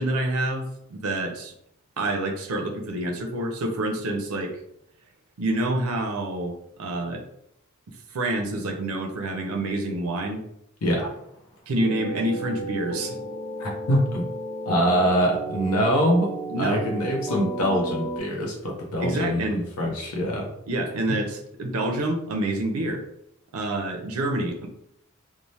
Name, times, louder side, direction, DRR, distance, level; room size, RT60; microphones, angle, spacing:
voice 1, 0.0-1.5 2.0-4.5 5.4-6.5 6.8-7.2 8.1-10.4 11.7-13.2 16.5-16.8 19.0-19.6 20.7-23.0 23.5-24.7, right 1 dB, 80° right, 4 dB, 0.4 m, -27 dB
voice 2, 10.8-11.1 13.6-14.3 14.6-16.3 16.6-20.5, equal, 85° left, -1 dB, 0.6 m, -24 dB
sound 1, 11.8-18.2, right 2 dB, 25° left, 0.8 m, -33 dB
2.7 x 2.0 x 3.0 m, 0.75 s
head